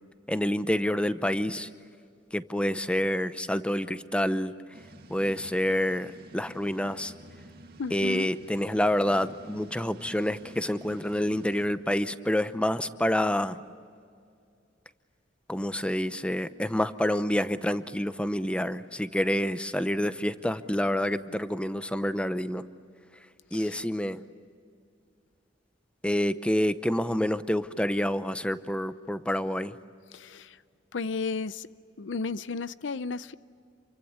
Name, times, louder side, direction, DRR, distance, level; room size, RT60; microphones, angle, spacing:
voice 1, 0.3-1.7 2.3-4.5 5.1-7.1 7.9-13.6 15.5-22.7 23.5-24.2 26.0-29.8, left 1 dB, 5° left, 0.8 m, -28 dB
sound 1, 4.7-11.7, right 1 dB, 55° right, 2.3 m, -50 dB
voice 2, 7.8-8.3 23.5-23.8 30.1-30.6 30.9-31.7 32.0-33.3, left 4 dB, 80° left, 0.6 m, -33 dB
28.5 x 24.0 x 8.6 m
head